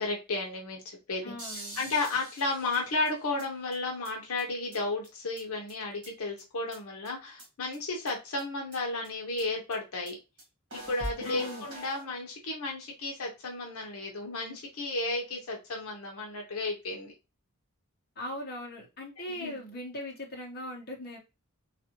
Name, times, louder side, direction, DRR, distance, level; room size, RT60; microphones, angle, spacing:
voice 1, 0.0-10.2 10.7-17.1 19.3-19.6, left 2 dB, 75° left, 0.7 m, -33 dB
voice 2, 1.2-1.8 11.2-11.7 18.2-21.2, left 1 dB, 45° left, 0.9 m, -39 dB
sound 1, 1.4-3.4 3.7-3.8 4.0-4.1 4.4-4.5 4.7-4.8 5.0-5.1 5.4-5.5 5.7-6.4 6.7-6.8 7.1-7.2 7.4-7.5 7.7-7.8 8.1-8.2 8.4-8.5 8.7-8.8 9.0-9.1 9.4-9.5 9.7-9.8 10.1-10.2 10.4-10.5 10.7-12.0, right 1 dB, 50° right, 1.7 m, -43 dB
3.4 x 2.5 x 2.8 m
head